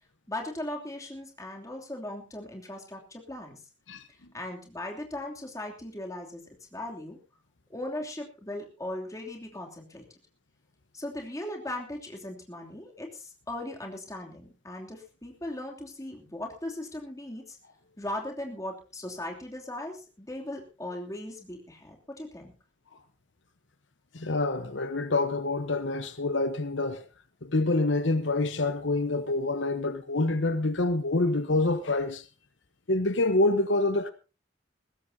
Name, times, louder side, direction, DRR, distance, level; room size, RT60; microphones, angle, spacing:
voice 1, 0.3-3.6 4.3-6.4 6.7-7.2 7.7-10.1 10.9-17.6 18.0-22.5, left 1 dB, 15° left, 3.0 m, -38 dB
voice 2, 24.1-27.0 27.4-32.3 32.9-34.1, left 2 dB, 75° left, 1.1 m, -26 dB
20.5 x 16.0 x 2.8 m
head